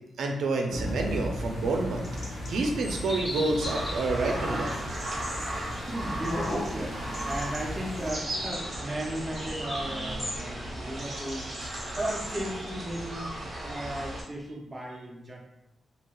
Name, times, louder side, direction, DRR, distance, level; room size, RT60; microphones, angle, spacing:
voice 1, 0.2-5.0, right 3 dB, 85° right, 2 dB, 0.4 m, -29 dB
thunderclap rain rumble, 0.7-8.1, left 1 dB, 80° left, 1.0 m, -37 dB
sound 1, 1.3-10.9, left 1 dB, 35° left, 0.5 m, -40 dB
sound 2, 3.6-14.2, right 1 dB, 35° right, 1.0 m, -36 dB
voice 2, 5.8-11.5 12.0-13.3 13.6-15.4, right 1 dB, 15° right, -2 dB, 0.6 m, -35 dB
3.0 x 2.8 x 2.3 m, 0.83 s
wide cardioid pair, 155°, 0 cm